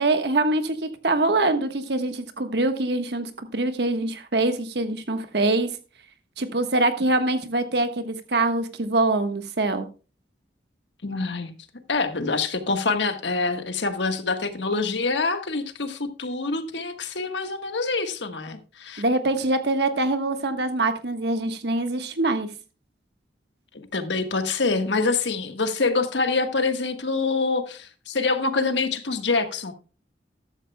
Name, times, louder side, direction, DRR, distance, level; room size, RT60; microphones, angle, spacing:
voice 1, 0.0-5.7 6.4-9.9 19.0-22.5, right 2 dB, 65° right, 1.3 m, -24 dB
voice 2, 11.0-11.5 11.9-19.0 23.7-29.7, left 3 dB, 80° left, 1.4 m, -26 dB
14.0 x 12.0 x 2.2 m
head